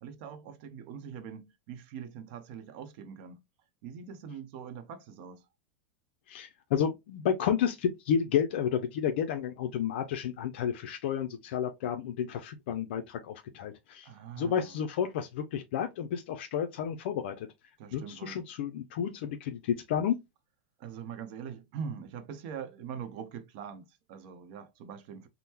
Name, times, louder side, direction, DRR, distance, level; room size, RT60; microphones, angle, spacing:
voice 1, 0.0-3.4 3.8-5.5 14.0-14.8 17.8-18.4 20.8-25.3, right 7 dB, 55° right, 0.7 m, -43 dB
voice 2, 6.3-14.1 14.4-17.5 17.9-20.2, left 8 dB, 65° left, 0.5 m, -31 dB
3.5 x 2.1 x 2.8 m
supercardioid pair, 145°, 6 cm